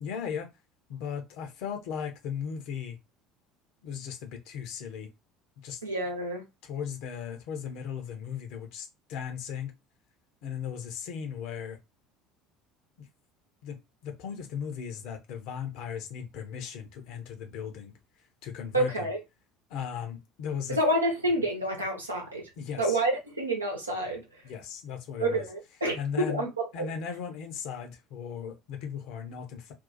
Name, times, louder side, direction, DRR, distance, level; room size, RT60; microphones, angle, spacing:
voice 1, 0.0-0.5 0.9-3.0 3.8-5.1 5.6-5.8 6.6-9.7 10.4-11.8 13.0-13.1 13.6-17.9 18.4-19.1 19.7-20.8 22.6-23.0 24.4-25.4 25.9-26.5 26.7-29.7, left 7 dB, 55° left, 0.8 m, -37 dB
voice 2, 5.8-6.4 18.7-19.2 20.7-22.4 22.8-24.2 25.2-26.5 26.8-26.9, right 1 dB, 85° right, 0.9 m, -28 dB
2.7 x 2.4 x 3.9 m
figure-of-eight pair, 65°, 0 cm